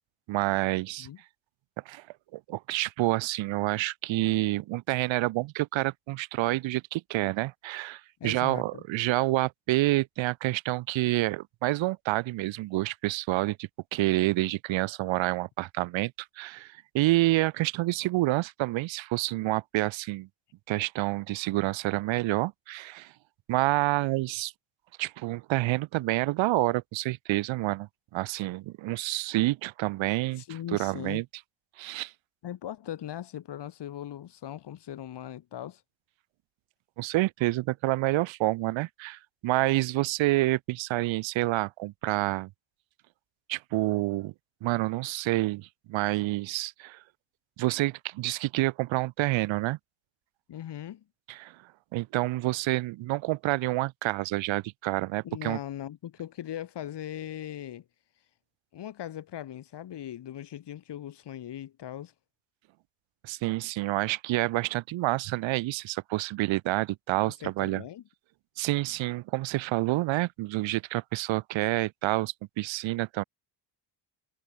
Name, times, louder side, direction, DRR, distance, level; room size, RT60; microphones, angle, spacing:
voice 1, 0.3-1.1 1.8-2.0 2.3-20.3 20.7-23.1 23.5-24.5 25.0-30.4 30.7-31.2 31.8-32.1 37.0-42.5 43.5-44.3 44.6-47.0 47.6-49.8 51.3-51.5 51.9-55.6 63.2-67.8 68.6-73.2, right 18 dB, 80° right, 1.3 m, -28 dB
voice 2, 8.2-8.8 30.4-31.2 32.4-35.8 50.5-51.0 55.2-57.8 58.7-62.1 67.2-68.0, left 11 dB, 60° left, 6.7 m, -39 dB
cardioid pair, 100°, 46 cm